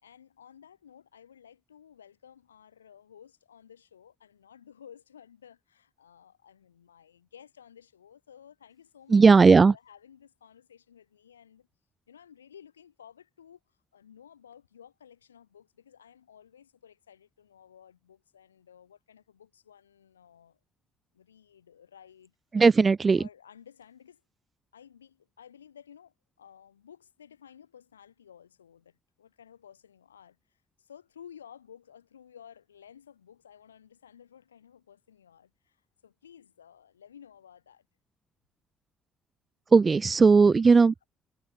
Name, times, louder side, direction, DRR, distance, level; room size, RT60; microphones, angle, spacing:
voice 1, 0.0-11.7 12.1-20.6 21.1-22.3 23.2-24.2 24.7-37.9, left 8 dB, 85° left, 3.8 m, -54 dB
voice 2, 9.1-9.7 22.5-23.2 39.7-41.1, right 4 dB, 35° right, 0.6 m, -18 dB
figure-of-eight pair, 45°, 0 cm